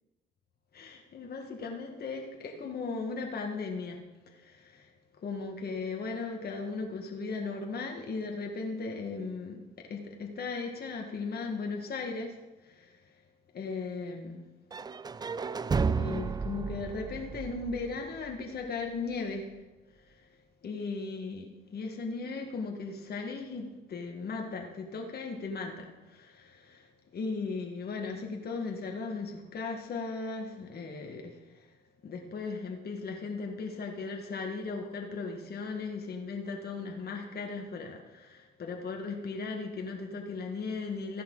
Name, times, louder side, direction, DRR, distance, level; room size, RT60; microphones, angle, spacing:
voice 1, 0.7-13.2 13.5-14.5 15.9-19.6 19.9-31.7 32.0-41.2, left 4 dB, 50° left, 2 dB, 1.7 m, -37 dB
sound 1, 14.7-18.6, right 5 dB, 20° right, 0.3 m, -33 dB
14.5 x 10.0 x 3.9 m, 1.1 s
cardioid pair, 90°, 20 cm